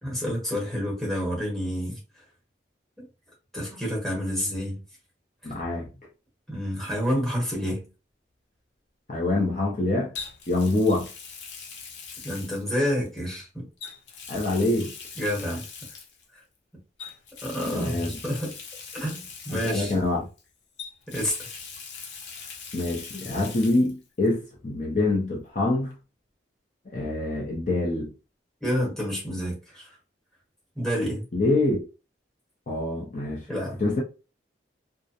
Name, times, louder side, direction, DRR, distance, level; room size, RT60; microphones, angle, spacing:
voice 1, 0.0-2.0 3.0-3.1 3.5-4.8 6.5-7.9 12.2-13.7 15.2-15.6 17.4-18.5 18.9-19.9 21.1-21.6 28.6-29.9 30.8-31.2 33.5-33.8, equal, ahead, 1.0 m, -29 dB
voice 2, 5.4-5.9 9.1-10.1 10.5-11.1 14.3-14.9 17.7-18.1 19.5-20.3 22.7-25.9 26.9-28.1 31.3-31.8 32.7-33.4 33.8-34.0, left 2 dB, 40° left, 0.5 m, -25 dB
Water tap faucet, 7.2-7.4 10.1-13.2 13.8-16.3 17.0-20.4 20.8-23.9 24.2-24.3 25.9-26.0, left 6 dB, 90° left, 0.6 m, -41 dB
2.4 x 2.0 x 2.7 m
head